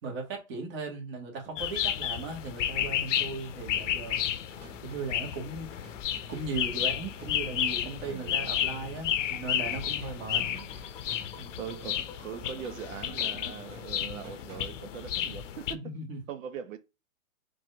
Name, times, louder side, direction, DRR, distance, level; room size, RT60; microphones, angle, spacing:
voice 1, 0.0-4.2 4.8-5.7 6.3-10.4 11.4-11.6 15.7-16.2, right 3 dB, 45° right, 2.2 m, -37 dB
sound 1, 1.6-15.7, left 11 dB, 60° left, 0.7 m, -32 dB
sound 2, 4.0-15.0, left 1 dB, 20° right, 2.2 m, -52 dB
sound 3, 6.9-13.5, left 3 dB, 10° left, 0.5 m, -52 dB
voice 2, 8.1-8.5 10.4-10.7 11.6-15.9 16.3-16.8, right 8 dB, 70° right, 1.0 m, -41 dB
4.7 x 4.0 x 2.8 m
hypercardioid pair, 145°, 41 cm